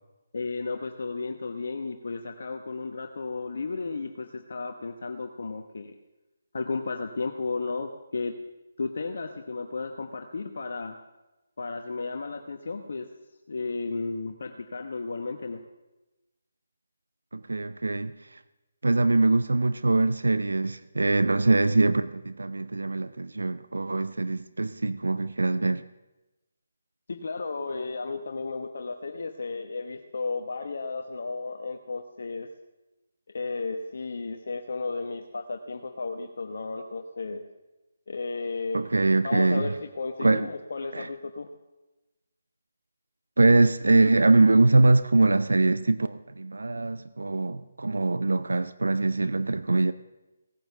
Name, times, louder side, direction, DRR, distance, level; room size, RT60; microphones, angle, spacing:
voice 1, 0.3-5.9 6.5-8.3 8.8-11.0 11.6-13.1 13.5-15.6 27.1-32.5 33.3-37.4 38.1-38.8 39.2-41.5, left 3 dB, 65° left, 1.0 m, -33 dB
voice 2, 17.3-18.4 18.8-25.8 38.7-39.7 40.2-40.5 40.9-41.1 43.4-49.9, right 2 dB, 80° right, 0.5 m, -23 dB
17.0 x 9.2 x 6.8 m
figure-of-eight pair, 150°, 0 cm